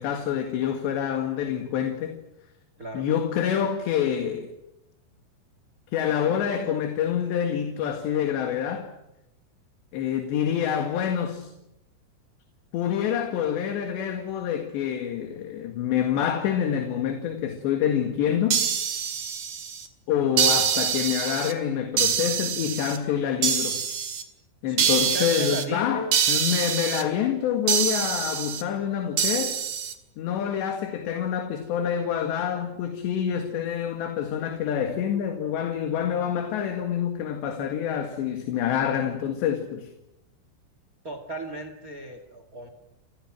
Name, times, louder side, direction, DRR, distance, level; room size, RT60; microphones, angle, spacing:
voice 1, 0.0-2.2 2.9-4.5 5.9-8.9 9.9-11.5 12.7-18.6 20.1-23.8 24.6-29.6 30.2-39.9, left 9 dB, 65° left, 3.8 m, -27 dB
sound 1, 18.5-19.9 20.4-21.5 22.0-23.0 23.4-24.2 24.8-25.6 26.1-27.0 27.7-28.6 29.2-29.9, right 8 dB, 50° right, 3.2 m, -25 dB
voice 2, 24.7-26.1 41.0-42.7, right 1 dB, 70° right, 0.8 m, -35 dB
29.0 x 29.0 x 6.2 m
omnidirectional pair, 5.9 m